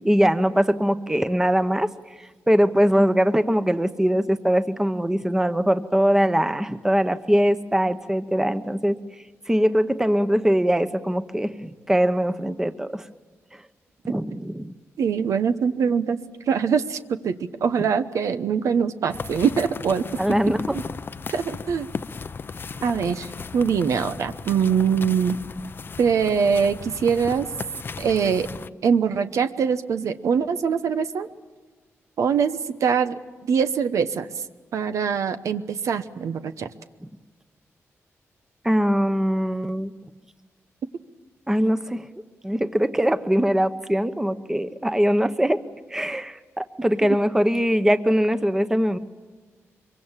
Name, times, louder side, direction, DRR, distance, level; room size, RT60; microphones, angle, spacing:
voice 1, 0.0-1.9 2.2-9.0 9.5-13.0 13.5-13.6 14.0-14.7 20.2-20.8 37.0-37.1 38.6-39.9 41.5-42.1 42.4-45.6 45.9-49.0, equal, 10° right, 10 dB, 1.0 m, -22 dB
voice 2, 15.0-16.2 16.5-20.4 20.7-20.8 21.3-21.9 22.8-23.3 23.5-25.4 26.0-27.5 28.0-28.5 28.8-31.3 32.2-33.2 33.5-34.3 34.7-36.7, right 6 dB, 80° right, 10 dB, 1.0 m, -23 dB
sound 1, 19.1-28.7, left 5 dB, 45° left, 0.6 m, -36 dB
24.0 x 23.5 x 7.4 m, 1.4 s
cardioid pair, 100°, 5 cm